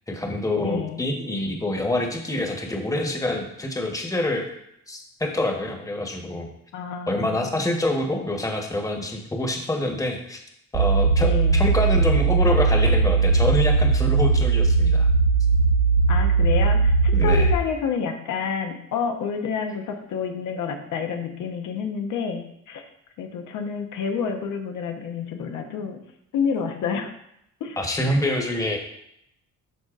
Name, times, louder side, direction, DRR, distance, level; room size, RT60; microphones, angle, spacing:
voice 1, 0.1-4.5 4.9-6.5 7.1-10.4 10.7-15.1 17.1-17.5 27.8-28.8, left 1 dB, 10° left, 2 dB, 1.1 m, -26 dB
voice 2, 0.6-1.0 6.7-7.6 11.2-11.6 16.1-22.8 23.2-26.0 26.3-27.1 27.6-27.8, left 6 dB, 80° left, 4 dB, 0.9 m, -29 dB
sound 1, 10.7-17.6, right 4 dB, 80° right, 0.6 m, -19 dB
12.0 x 4.0 x 2.5 m, 0.77 s
cardioid pair, 90°, 30 cm